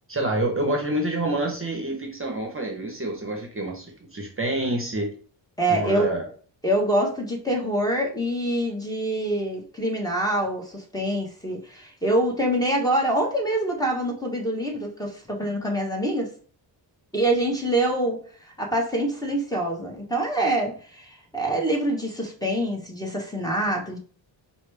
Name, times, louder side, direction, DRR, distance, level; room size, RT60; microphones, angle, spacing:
voice 1, 0.1-5.1 5.7-6.3, right 1 dB, 25° right, 1.0 m, -27 dB
voice 2, 5.6-6.2 6.6-16.3 17.1-24.0, right 1 dB, 10° left, 1.2 m, -25 dB
4.9 x 2.3 x 3.4 m
cardioid pair, 75°, 46 cm